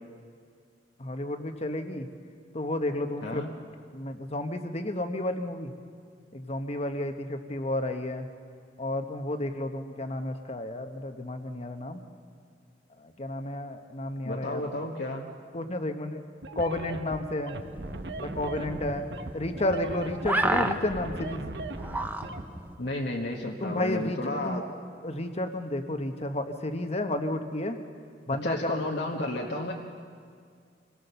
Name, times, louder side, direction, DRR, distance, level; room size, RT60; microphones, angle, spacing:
voice 1, 1.0-2.1 2.5-3.4 3.9-5.7 6.3-8.3 8.8-12.0 13.0-14.6 15.5-16.2 16.5-17.6 18.2-19.1 19.3-21.4 23.6-24.7 25.0-27.8 28.3-28.8, left 1 dB, 35° left, 7 dB, 1.1 m, -31 dB
voice 2, 3.2-3.5 14.2-15.2 22.8-24.6 28.4-29.7, left 1 dB, 65° left, -1 dB, 1.3 m, -32 dB
sound 1, 16.4-22.4, right 2 dB, 65° right, 1.0 m, -38 dB
sound 2, 17.5-22.7, right 1 dB, 10° right, 0.8 m, -33 dB
26.0 x 17.5 x 6.9 m, 2.1 s
head